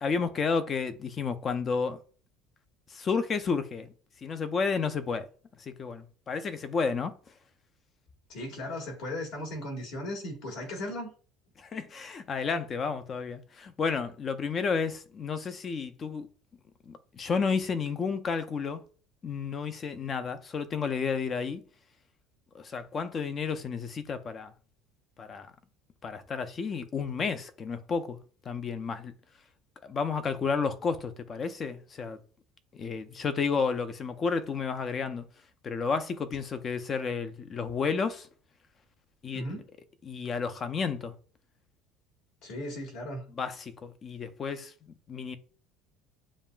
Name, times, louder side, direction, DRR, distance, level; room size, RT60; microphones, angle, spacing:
voice 1, 0.0-2.0 2.9-3.9 4.2-5.3 5.6-7.1 11.6-16.3 16.9-18.8 19.2-21.6 22.5-24.5 25.2-25.5 26.0-28.2 28.5-29.1 29.8-32.2 32.7-35.2 35.6-38.3 39.2-39.4 40.0-41.1 43.4-45.4, left 5 dB, 30° left, 0.5 m, -31 dB
voice 2, 8.3-11.1 39.3-39.7 42.4-43.2, left 1 dB, 65° left, 1.8 m, -36 dB
7.1 x 2.4 x 2.3 m
cardioid pair, 130°, 0 cm